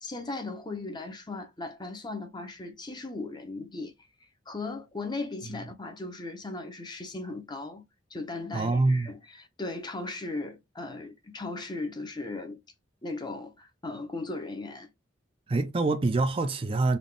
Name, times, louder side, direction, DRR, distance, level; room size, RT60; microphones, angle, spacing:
voice 1, 0.0-3.9 4.5-12.6 13.0-14.9, left 3 dB, 25° left, 0.7 m, -37 dB
voice 2, 8.5-9.1 15.5-17.0, right 3 dB, 30° right, 0.4 m, -25 dB
4.0 x 2.4 x 3.3 m
head